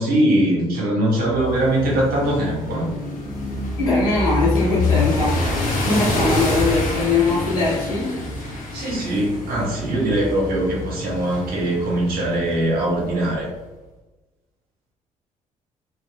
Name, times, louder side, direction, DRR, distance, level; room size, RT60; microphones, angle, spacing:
voice 1, 0.0-2.9 8.7-13.5, right 1 dB, 60° right, -3 dB, 0.9 m, -21 dB
sound 1, 1.3-13.4, left 2 dB, 50° left, 0.8 m, -27 dB
voice 2, 3.8-5.4 5.8-8.1, left 3 dB, 80° left, -8 dB, 1.2 m, -21 dB
2.8 x 2.3 x 2.3 m, 1.1 s
figure-of-eight pair, 45°, 18 cm